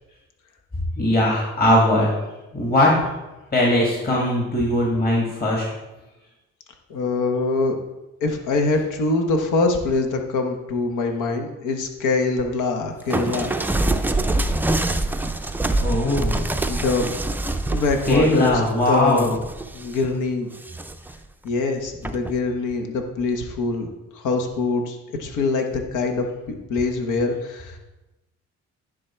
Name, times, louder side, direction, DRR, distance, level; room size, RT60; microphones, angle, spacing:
voice 1, 1.0-2.1 2.5-2.9 3.5-5.7 15.8-16.3 18.1-19.3, left 1 dB, 30° left, -3 dB, 1.9 m, -19 dB
voice 2, 6.9-7.8 8.2-13.5 16.7-17.1 17.7-18.6 18.9-19.4 19.7-20.5 21.4-27.8, left 3 dB, 90° left, 4 dB, 1.1 m, -24 dB
sound 1, 13.1-20.1 20.5-21.2 22.0-22.4, right 2 dB, 5° right, 0.4 m, -25 dB
10.0 x 3.8 x 4.4 m, 1.0 s
cardioid pair, 90°, 30 cm